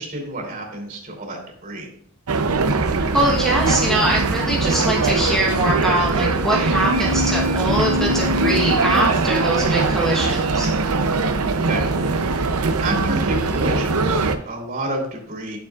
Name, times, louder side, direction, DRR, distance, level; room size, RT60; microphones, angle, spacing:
voice 1, 0.0-1.9 11.5-12.4 12.8-15.6, right 1 dB, 35° right, -1 dB, 3.0 m, -30 dB
sound 1, 2.3-14.4, right 3 dB, 90° right, 0.7 m, -21 dB
voice 2, 3.1-10.7, right 1 dB, ahead, -3 dB, 1.1 m, -22 dB
9.6 x 7.0 x 2.4 m, 0.65 s
head